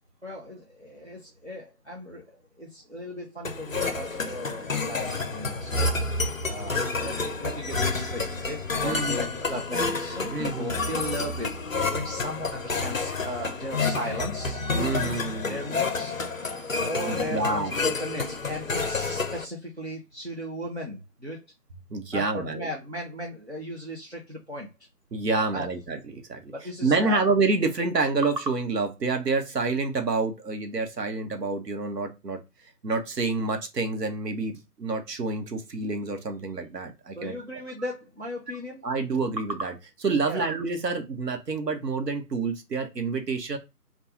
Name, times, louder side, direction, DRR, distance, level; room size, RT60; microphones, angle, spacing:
voice 1, 0.2-5.9 6.4-11.5 11.9-14.6 15.5-16.1 16.8-21.4 22.1-24.7 25.5-25.7 26.5-27.2 37.2-38.8 40.2-40.5, equal, 45° right, -2 dB, 0.4 m, -36 dB
sound 1, 3.4-19.4, left 3 dB, 55° left, 0.5 m, -29 dB
voice 2, 8.8-9.2 10.3-10.7 14.8-15.6 17.1-17.7 21.9-22.7 25.1-32.4 32.8-37.4 38.8-43.6, right 3 dB, 80° right, 5 dB, 0.8 m, -28 dB
3.1 x 2.2 x 2.3 m, 0.24 s
figure-of-eight pair, 165°, 48 cm